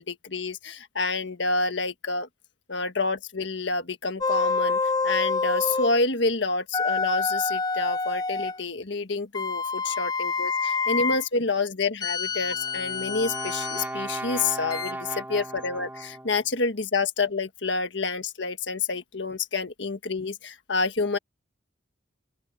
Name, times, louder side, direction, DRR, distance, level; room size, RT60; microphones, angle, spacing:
voice 1, 0.0-2.3 2.7-4.8 5.0-21.2, left 3 dB, 75° left, 1.5 m, -28 dB
sound 1, 4.2-6.0 6.7-8.6 9.3-11.3 12.0-13.9 14.7-14.9, left 4 dB, 20° left, 0.4 m, -27 dB
Brass instrument, 12.3-16.4, right 1 dB, 10° right, 2.8 m, -36 dB
open air
head